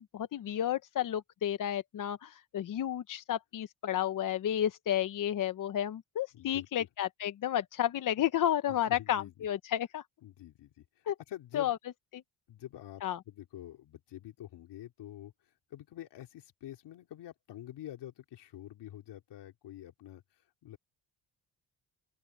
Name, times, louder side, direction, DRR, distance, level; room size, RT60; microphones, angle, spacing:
voice 1, 0.0-10.0 11.1-11.2 11.5-11.8 12.1-12.2 13.0-13.2, left 11 dB, 50° left, 0.9 m, -32 dB
voice 2, 6.3-6.9 8.7-9.3 10.2-11.7 12.5-15.3 15.7-20.2 20.6-20.8, left 12 dB, 75° left, 3.6 m, -47 dB
open air
cardioid pair, 125°, 42 cm